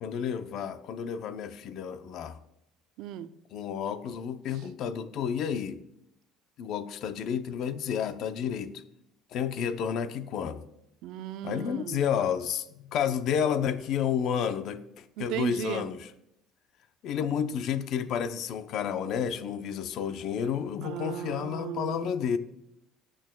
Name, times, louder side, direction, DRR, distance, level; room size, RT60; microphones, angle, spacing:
voice 1, 0.0-2.4 3.5-5.8 6.6-8.8 9.3-10.6 11.4-16.1 17.0-22.4, left 8 dB, 55° left, 11 dB, 0.6 m, -31 dB
voice 2, 3.0-3.3 11.0-12.0 15.2-15.8 20.8-22.0, right 11 dB, 70° right, 12 dB, 0.5 m, -36 dB
14.0 x 8.8 x 2.3 m, 0.80 s
cardioid pair, 140°, 0 cm